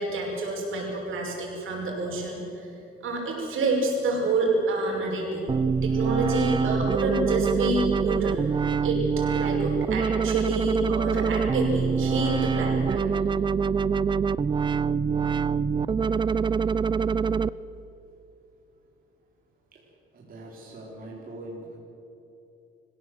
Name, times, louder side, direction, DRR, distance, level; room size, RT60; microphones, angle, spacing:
voice 1, 0.0-2.7 3.0-5.5 5.8-8.5 8.8-13.1, right 2 dB, 75° right, -1 dB, 5.9 m, -28 dB
Wobble drop, 5.5-17.5, right 6 dB, 25° right, 0.4 m, -25 dB
voice 2, 20.1-21.8, right 1 dB, 45° right, -3 dB, 3.8 m, -41 dB
25.5 x 16.0 x 7.7 m, 2.9 s
cardioid pair, 130°, 21 cm